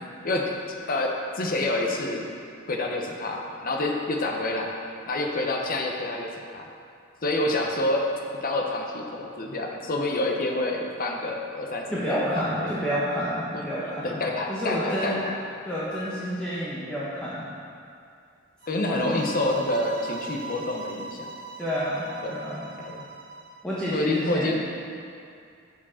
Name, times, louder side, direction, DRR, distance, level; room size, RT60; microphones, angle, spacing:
voice 1, 0.9-2.3 2.7-4.7 5.1-6.7 7.2-8.0 8.4-12.0 12.6-12.8 13.5-13.6 14.0-15.3 18.7-21.3 22.2-23.1 23.9-24.6, left 2 dB, 45° left, 1 dB, 0.8 m, -28 dB
voice 2, 11.9-14.2 14.5-15.3 15.6-17.5 18.8-19.2 21.6-22.6 23.6-24.6, equal, 5° left, -10 dB, 1.0 m, -29 dB
sound 1, 18.6-23.6, right 3 dB, 55° right, 0.6 m, -40 dB
7.2 x 4.9 x 5.7 m, 2.4 s
head